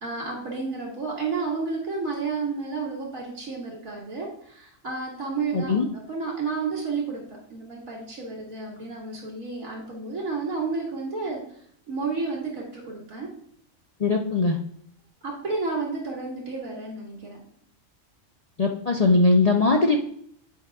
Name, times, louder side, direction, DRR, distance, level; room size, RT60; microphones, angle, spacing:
voice 1, 0.0-7.2 7.5-11.4 11.9-13.3 15.2-17.4, right 4 dB, 70° right, -3 dB, 2.4 m, -31 dB
voice 2, 5.5-5.9 14.0-14.6 18.6-20.0, left 3 dB, 50° left, 2 dB, 0.4 m, -20 dB
8.5 x 5.2 x 3.5 m, 0.66 s
omnidirectional pair, 1.5 m